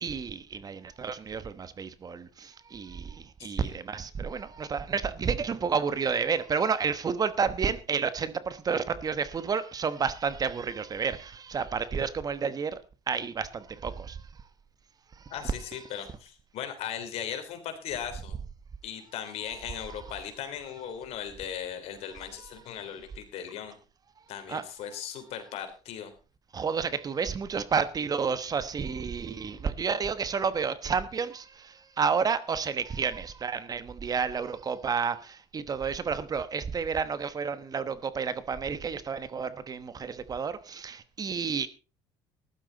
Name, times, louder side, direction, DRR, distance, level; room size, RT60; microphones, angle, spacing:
voice 1, 0.0-12.8 13.1-14.2 15.1-15.3 19.5-19.6 24.5-24.6 26.5-41.7, right 6 dB, 35° right, 1.1 m, -30 dB
voice 2, 3.4-3.8 15.3-18.4 18.8-23.8 24.3-26.1, left 9 dB, 65° left, 3.4 m, -38 dB
14.5 x 12.0 x 4.0 m
supercardioid pair, 95°, 11 cm